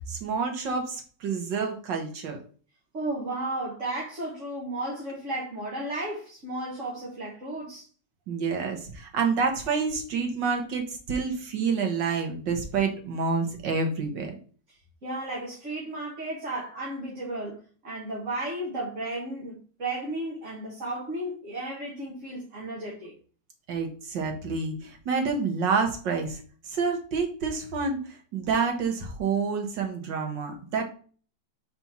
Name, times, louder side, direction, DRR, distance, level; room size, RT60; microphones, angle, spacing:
voice 1, 0.1-2.4 8.3-14.3 23.7-26.4 26.7-30.8, right 5 dB, 70° right, 1.9 m, -28 dB
voice 2, 2.9-7.8 15.0-23.1, right 1 dB, 40° right, 1.9 m, -34 dB
4.4 x 4.3 x 5.8 m
omnidirectional pair, 2.0 m